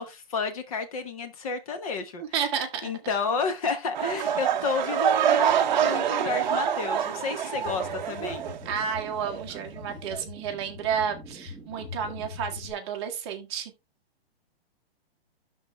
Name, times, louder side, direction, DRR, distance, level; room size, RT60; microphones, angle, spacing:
voice 1, 0.0-2.2 2.8-8.4, left 5 dB, 35° left, 1.4 m, -31 dB
voice 2, 2.2-2.9 8.6-13.7, right 7 dB, 25° right, 1.4 m, -31 dB
sound 1, 3.9-9.0 9.2-9.6 10.1-10.2, right 9 dB, 45° right, 0.9 m, -26 dB
sound 2, 7.7-12.7, left 3 dB, ahead, 1.4 m, -42 dB
12.5 x 4.2 x 3.3 m
hypercardioid pair, 170°, 31 cm